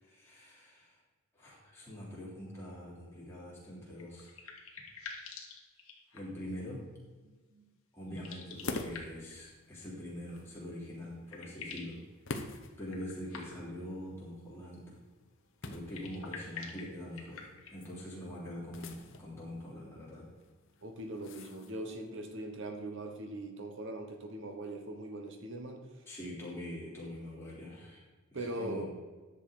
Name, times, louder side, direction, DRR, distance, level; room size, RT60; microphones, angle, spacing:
voice 1, 0.0-1.0 1.3-4.3 6.1-6.8 7.9-12.0 12.4-15.0 15.6-20.2 26.1-28.0 28.3-28.9, left 1 dB, 10° left, -7 dB, 3.3 m, -44 dB
sound 1, 3.9-6.5 8.1-9.4 10.7-10.8 11.0-12.0 12.8-13.8 15.7-17.9, left 5 dB, 75° left, 1.7 m, -47 dB
voice 2, 7.2-7.6 20.8-26.0 28.3-28.9, right 1 dB, 55° right, 5 dB, 1.3 m, -41 dB
sound 2, 8.5-22.1, left 3 dB, 60° left, 0.9 m, -48 dB
10.5 x 6.7 x 5.1 m, 1.3 s
head